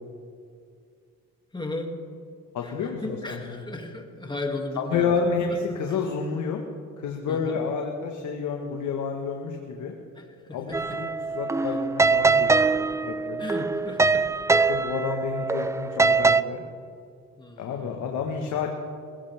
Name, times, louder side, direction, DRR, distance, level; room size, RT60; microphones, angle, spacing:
voice 1, 1.5-1.9 2.6-5.1 5.9-6.0 7.3-7.6 10.2-10.6 11.6-11.8 13.4-14.3 14.5-14.7 17.4-18.1, left 2 dB, 15° left, 2 dB, 2.4 m, -36 dB
voice 2, 2.5-3.6 4.8-6.6 7.0-9.9 10.5-11.1 11.3-13.4 14.0-14.1 14.7-16.6 17.6-18.7, left 5 dB, 80° left, 2 dB, 1.5 m, -30 dB
sound 1, 10.7-16.4, right 4 dB, 10° right, 0.3 m, -23 dB
20.5 x 17.0 x 3.5 m, 2.3 s
cardioid pair, 90°, 30 cm